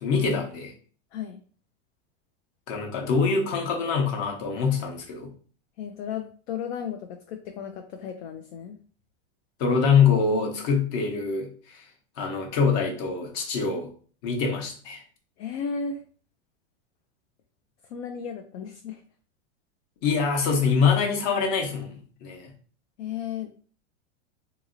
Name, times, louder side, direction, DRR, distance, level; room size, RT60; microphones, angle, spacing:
voice 1, 0.0-0.7 2.7-5.3 9.6-11.8 12.2-13.9 14.2-15.0 20.0-22.5, left 5 dB, 45° left, 1 dB, 1.0 m, -24 dB
voice 2, 5.8-8.8 15.4-16.0 17.9-19.0 23.0-23.5, left 7 dB, 60° left, 5 dB, 0.5 m, -34 dB
2.8 x 2.8 x 2.5 m, 0.42 s
supercardioid pair, 140°, 36 cm